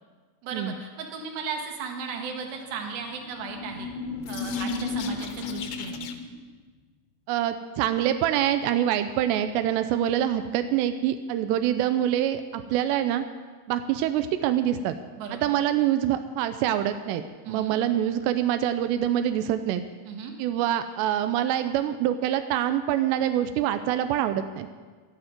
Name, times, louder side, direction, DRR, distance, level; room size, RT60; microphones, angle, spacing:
voice 1, 0.4-3.9 4.3-6.0 15.1-15.6 17.4-17.8 20.1-20.3, right 5 dB, 65° right, 3 dB, 3.0 m, -36 dB
sound 1, 3.2-6.4, left 4 dB, 85° left, 3.5 m, -33 dB
voice 2, 7.3-13.3 13.7-15.0 15.3-19.9 20.4-24.7, right 11 dB, 85° right, 9 dB, 2.5 m, -25 dB
16.0 x 12.5 x 5.2 m, 1.5 s
omnidirectional pair, 5.6 m